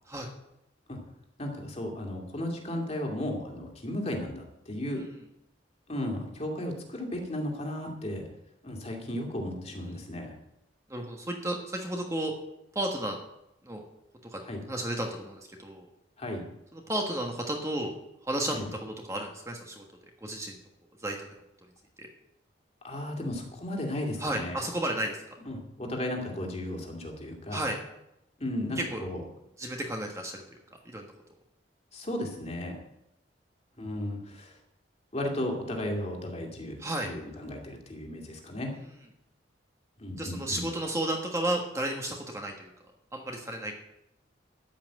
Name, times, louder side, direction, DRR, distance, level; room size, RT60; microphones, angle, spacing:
voice 1, 1.4-5.0 5.9-8.2 8.6-10.3 14.4-14.6 16.2-16.4 18.5-18.7 22.8-24.6 25.5-27.6 28.4-29.2 31.9-32.8 33.8-34.6 35.1-36.7 37.0-38.7 40.0-40.6, left 1 dB, 35° left, 1 dB, 2.2 m, -35 dB
voice 2, 10.9-12.3 12.7-13.2 13.6-13.8 14.2-14.4 14.7-15.9 16.7-17.9 18.2-19.8 20.2-20.5 21.0-21.3 22.0-22.1 24.2-25.2 27.5-27.8 28.8-29.0 29.6-30.4 30.8-31.1 36.8-37.1 40.2-42.7 43.1-43.8, right 1 dB, 15° right, 2 dB, 1.3 m, -33 dB
13.0 x 5.8 x 8.8 m, 0.86 s
head